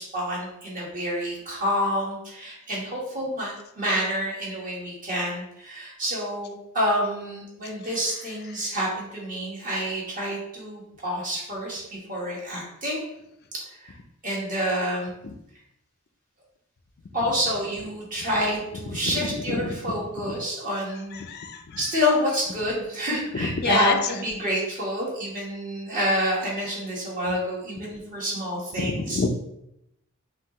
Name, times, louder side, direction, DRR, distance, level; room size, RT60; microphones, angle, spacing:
voice 1, 0.0-13.0 13.5-13.9 14.2-15.1 17.1-21.2 21.8-29.2, equal, 40° right, -4 dB, 1.4 m, -28 dB
voice 2, 21.1-21.8 23.3-24.0 28.8-29.3, left 4 dB, 50° left, 7 dB, 0.4 m, -27 dB
5.5 x 2.5 x 3.0 m, 0.82 s
head